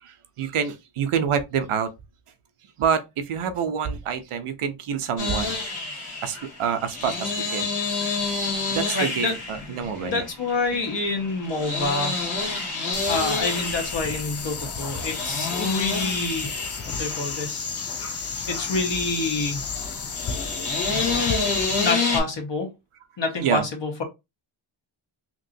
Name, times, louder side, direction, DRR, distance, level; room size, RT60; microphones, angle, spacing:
voice 1, 0.0-1.9 2.8-5.6 6.2-7.7 8.7-10.2 21.7-21.8 23.4-23.6, right 7 dB, 90° right, 0.6 m, -27 dB
sound 1, 5.2-22.2, left 3 dB, 75° left, 1.7 m, -29 dB
voice 2, 8.9-9.3 9.7-12.2 13.1-16.5 17.0-19.6 21.8-22.7 23.2-24.0, left 3 dB, 60° left, 1.3 m, -27 dB
sound 2, 12.9-21.9, left 5 dB, 35° left, 0.4 m, -32 dB
2.9 x 2.9 x 2.6 m
wide cardioid pair, 95°, 50 cm